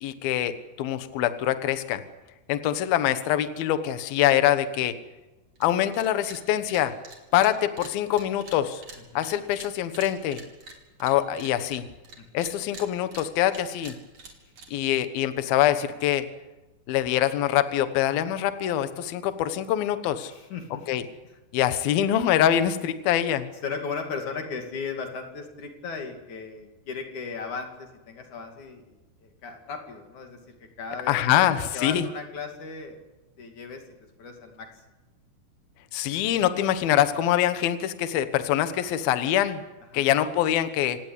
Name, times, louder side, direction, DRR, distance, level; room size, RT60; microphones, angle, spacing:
voice 1, 0.0-2.0 2.5-4.9 5.6-6.9 7.3-8.8 9.1-10.4 11.0-11.8 12.3-14.0 14.7-16.3 16.9-20.3 20.9-21.0 21.5-23.5 31.1-32.1 35.9-39.6 39.9-41.0, left 11 dB, 70° left, 11 dB, 2.9 m, -24 dB
sound 1, 5.6-5.7 5.9-6.4 6.7-12.2 12.4-15.0, right 3 dB, 40° right, 4.1 m, -45 dB
voice 2, 12.2-12.5 20.2-20.9 23.6-30.4 30.8-31.4 31.7-33.0 33.4-33.8 34.2-34.7 39.9-40.1, left 5 dB, 50° left, 4 dB, 3.6 m, -36 dB
27.5 x 18.0 x 8.3 m, 1.1 s
omnidirectional pair, 4.8 m